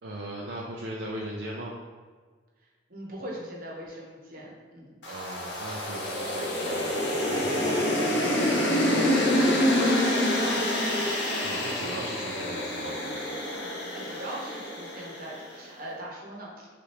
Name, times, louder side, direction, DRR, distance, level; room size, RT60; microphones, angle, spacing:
voice 1, 0.0-1.7 5.1-7.8 11.4-13.3, right 1 dB, 70° right, -3 dB, 0.5 m, -38 dB
voice 2, 2.9-4.9 8.9-9.3 9.7-11.1 13.9-16.7, right 1 dB, 55° right, -3 dB, 1.0 m, -40 dB
sound 1, 5.0-15.4, left 1 dB, 80° left, 0.9 m, -27 dB
6.3 x 2.5 x 3.0 m, 1.5 s
head